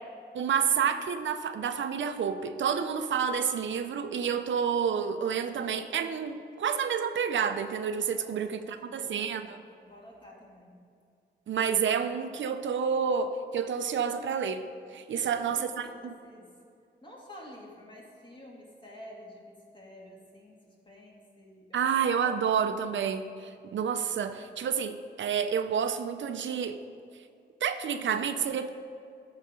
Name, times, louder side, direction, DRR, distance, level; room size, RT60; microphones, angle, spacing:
voice 1, 0.3-9.6 11.5-14.6 14.9-16.1 21.7-26.8 27.6-28.7, right 7 dB, 90° right, 8 dB, 0.6 m, -29 dB
voice 2, 8.2-9.5 9.8-10.7 15.1-16.5 17.0-22.0 22.3-22.5, equal, 25° left, -3 dB, 2.1 m, -50 dB
14.0 x 4.9 x 5.1 m, 2.5 s
wide cardioid pair, 115°, 19 cm